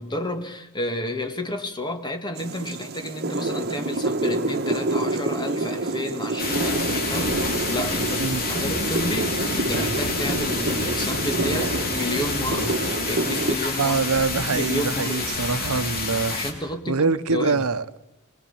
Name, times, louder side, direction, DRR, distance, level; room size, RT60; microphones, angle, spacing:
voice 1, 0.0-7.3 7.7-14.1 14.3-15.4 16.3-17.7, left 1 dB, 20° left, 2.2 m, -31 dB
sound 1, 2.4-13.6, right 2 dB, 50° right, 1.5 m, -27 dB
sound 2, 6.4-16.5, left 3 dB, 45° left, 4.0 m, -28 dB
voice 2, 13.8-16.3 16.9-18.0, right 4 dB, 80° right, 1.0 m, -24 dB
24.0 x 21.0 x 7.2 m
head